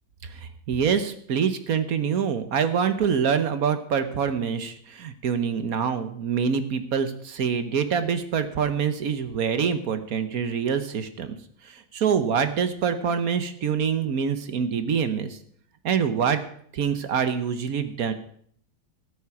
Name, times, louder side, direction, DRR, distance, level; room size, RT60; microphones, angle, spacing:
voice 1, 0.3-11.4 11.6-15.4 15.8-16.4 16.7-18.1, right 7 dB, 60° right, 10 dB, 1.4 m, -25 dB
13.5 x 8.5 x 6.0 m, 0.62 s
omnidirectional pair, 1.8 m